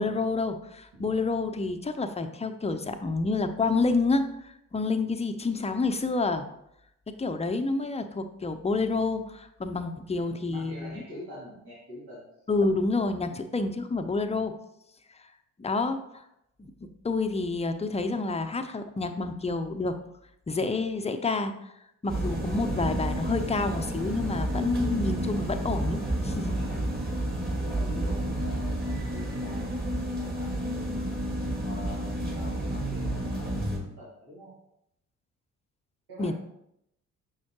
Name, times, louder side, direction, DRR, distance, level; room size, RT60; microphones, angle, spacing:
voice 1, 0.0-6.4 7.1-11.0 12.5-14.5 15.6-16.2 16.6-20.0 20.5-21.7 22.0-26.0 26.2-26.6 36.2-36.3, left 3 dB, 15° left, 8 dB, 0.7 m, -28 dB
voice 2, 10.1-12.3 19.2-19.3 27.5-29.7 30.0-30.8 31.4-34.5 36.1-36.3, left 1 dB, 65° right, -9 dB, 2.5 m, -45 dB
sound 1, 22.1-33.8, right 1 dB, 25° right, 2.2 m, -30 dB
6.3 x 5.7 x 2.9 m, 0.79 s
hypercardioid pair, 45°, 41 cm